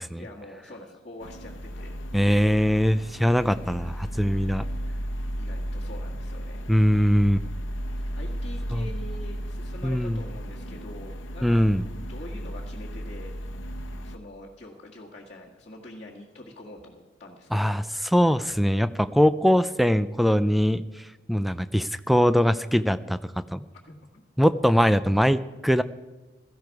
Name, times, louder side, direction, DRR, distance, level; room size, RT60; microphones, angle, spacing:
voice 1, 0.1-1.9 5.4-6.7 8.1-11.6 12.1-13.3 14.0-17.7 23.7-24.2, left 1 dB, 35° left, -5 dB, 1.7 m, -44 dB
sound 1, 1.2-14.2, equal, 90° left, 1.0 m, -34 dB
voice 2, 2.1-4.7 6.7-7.4 8.7-8.9 9.8-10.2 11.4-11.8 17.5-23.6 24.4-25.8, equal, ahead, 13 dB, 0.4 m, -22 dB
17.0 x 14.0 x 4.7 m, 1.2 s
head